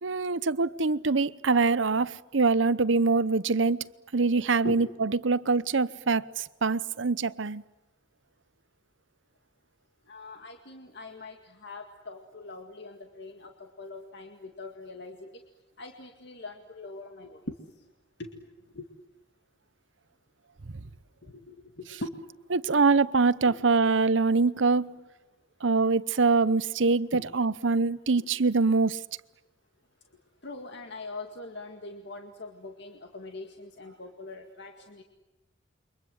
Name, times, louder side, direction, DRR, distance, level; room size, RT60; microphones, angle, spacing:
voice 1, 0.0-7.6 20.7-20.8 22.5-25.0 25.6-29.0, right 4 dB, 80° right, 0.9 m, -24 dB
voice 2, 10.1-15.3 15.8-17.5 18.2-18.3 18.7-18.9 21.3-22.1 23.5-23.6 27.1-27.2 28.2-28.3 30.4-35.0, left 2 dB, 65° left, 2.1 m, -42 dB
28.5 x 24.5 x 7.9 m
head